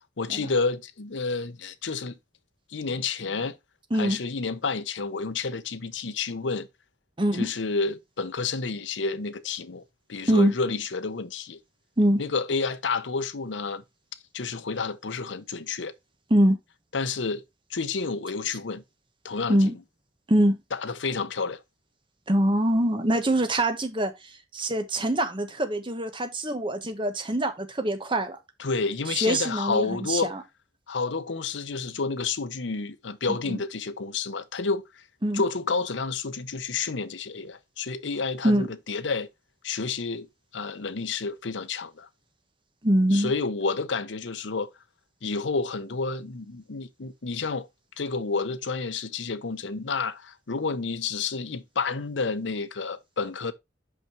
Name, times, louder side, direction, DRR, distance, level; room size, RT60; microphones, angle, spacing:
voice 1, 0.2-2.1 2.7-3.6 3.9-6.7 7.3-9.8 10.1-11.6 12.2-13.8 14.3-15.9 16.9-17.4 17.7-18.8 19.2-19.6 20.7-21.6 28.6-30.3 30.9-35.0 35.3-39.3 39.6-40.3 40.5-42.1 43.1-44.7 45.2-47.7 48.0-53.5, left 4 dB, 80° left, 0.8 m, -30 dB
voice 2, 7.2-7.5 10.3-10.5 12.0-12.2 16.3-16.6 19.5-19.8 20.3-20.6 22.3-24.1 24.5-28.4 29.1-30.4 33.5-33.6 35.2-35.4 38.4-38.7 42.8-43.3, right 1 dB, 25° right, 1.3 m, -23 dB
5.9 x 5.6 x 4.5 m
head